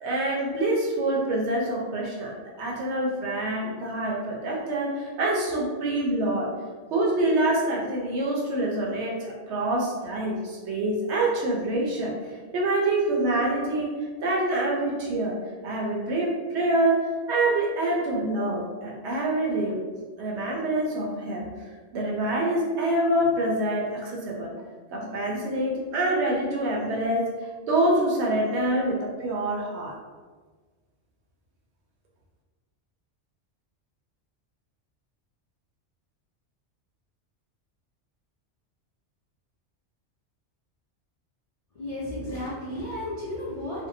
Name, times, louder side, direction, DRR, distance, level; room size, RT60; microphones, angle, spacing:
voice 1, 0.0-6.5 6.9-12.1 12.5-13.9 14.2-15.4 15.6-17.0 17.3-19.8 20.2-21.5 21.9-24.5 24.9-27.3 27.7-29.9, right 1 dB, 75° right, -2 dB, 0.8 m, -26 dB
voice 2, 41.7-43.9, left 1 dB, 70° left, -7 dB, 0.3 m, -33 dB
2.6 x 2.1 x 2.6 m, 1.4 s
omnidirectional pair, 1.2 m